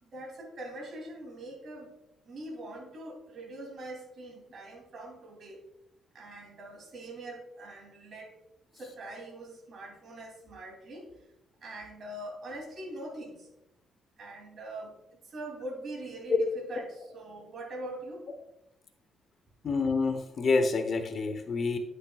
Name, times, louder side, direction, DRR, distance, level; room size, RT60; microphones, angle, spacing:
voice 1, 0.0-1.9 2.2-5.6 6.1-8.4 8.7-11.1 11.6-13.5 14.2-16.4 16.7-18.2, right 1 dB, 55° right, 1 dB, 3.0 m, -43 dB
voice 2, 19.6-21.8, left 4 dB, 50° left, 7 dB, 0.9 m, -27 dB
10.0 x 6.5 x 2.4 m, 0.86 s
cardioid pair, 90°, 0 cm